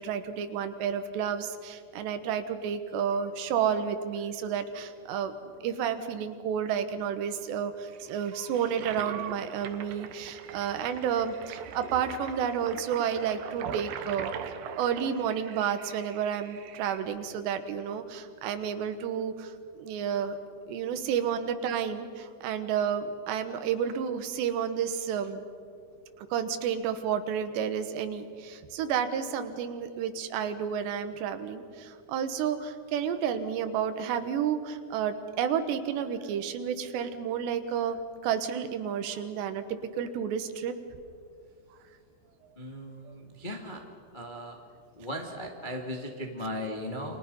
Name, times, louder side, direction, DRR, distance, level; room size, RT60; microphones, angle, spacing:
voice 1, 0.0-5.3 5.6-14.3 14.8-20.4 20.7-25.4 26.2-38.0 38.2-40.7 43.1-43.2, right 8 dB, 85° right, 9 dB, 3.5 m, -31 dB
Toilet flush, 7.9-17.0, right 8 dB, 70° right, 2.5 m, -42 dB
voice 2, 42.5-43.8 44.1-44.6 44.9-47.2, equal, 30° left, 1 dB, 0.8 m, -37 dB
29.5 x 25.0 x 5.5 m, 2.3 s
omnidirectional pair, 4.9 m